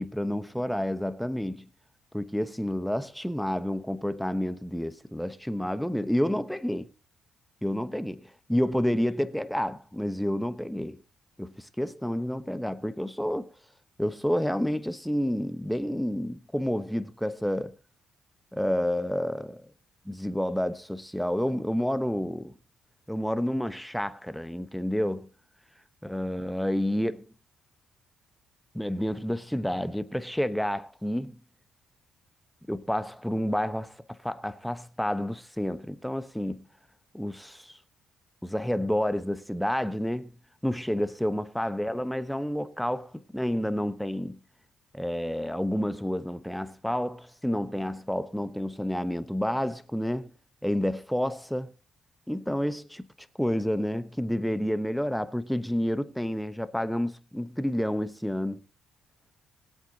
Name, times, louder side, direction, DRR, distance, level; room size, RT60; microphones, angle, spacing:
voice 1, 0.0-1.6 2.1-6.9 7.6-11.0 11.4-13.5 14.0-17.8 18.5-19.7 20.1-22.5 23.1-25.3 26.0-27.3 28.7-31.3 32.7-36.6 37.1-37.8 38.4-40.3 40.6-44.4 44.9-50.3 50.6-51.7 52.3-53.0 53.4-58.6, equal, ahead, 1.0 m, -29 dB
22.5 x 8.2 x 2.8 m
cardioid pair, 90°, 0 cm